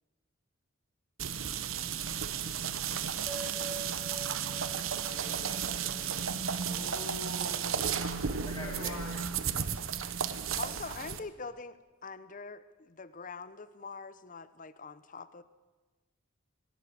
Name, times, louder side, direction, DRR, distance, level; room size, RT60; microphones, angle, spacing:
sound 1, 1.2-11.2, right 7 dB, 75° right, 1.0 m, -34 dB
sound 2, 3.3-7.9, right 2 dB, 5° right, 2.6 m, -47 dB
voice 1, 5.0-6.4 7.5-7.8 8.4-9.1, left 1 dB, 20° left, -5 dB, 2.9 m, -47 dB
voice 2, 6.6-9.3, left 2 dB, 85° left, -3 dB, 3.8 m, -44 dB
voice 3, 10.6-15.4, left 4 dB, 40° left, 14 dB, 0.9 m, -44 dB
19.0 x 18.0 x 8.6 m, 1.2 s
head